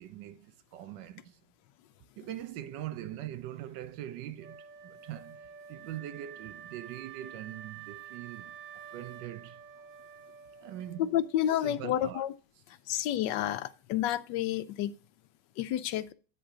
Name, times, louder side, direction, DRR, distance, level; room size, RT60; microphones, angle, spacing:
voice 1, 0.0-1.4 2.2-8.6 8.9-9.6 10.6-11.1 11.6-12.2, right 12 dB, 85° right, 1.3 m, -42 dB
Wind instrument woodwind instrument, 4.4-11.4, right 8 dB, 55° right, 1.1 m, -49 dB
voice 2, 11.0-12.3 12.9-14.9 15.6-16.1, left 12 dB, 85° left, 1.3 m, -30 dB
10.0 x 3.9 x 4.8 m
omnidirectional pair, 1.9 m